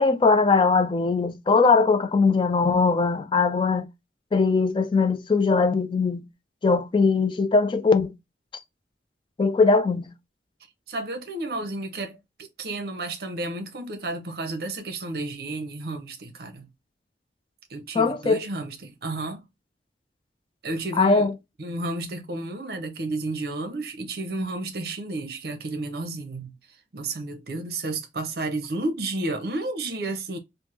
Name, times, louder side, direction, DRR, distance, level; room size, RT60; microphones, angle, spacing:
voice 1, 0.0-3.9 4.3-6.3 6.6-8.1 9.4-10.1 17.9-18.4 20.9-21.3, left 4 dB, 30° left, 0.3 m, -20 dB
voice 2, 10.9-12.2 12.6-16.7 17.7-19.4 20.6-21.3 21.6-26.5 26.9-30.4, right 2 dB, 60° right, 0.7 m, -32 dB
3.3 x 2.1 x 3.0 m
head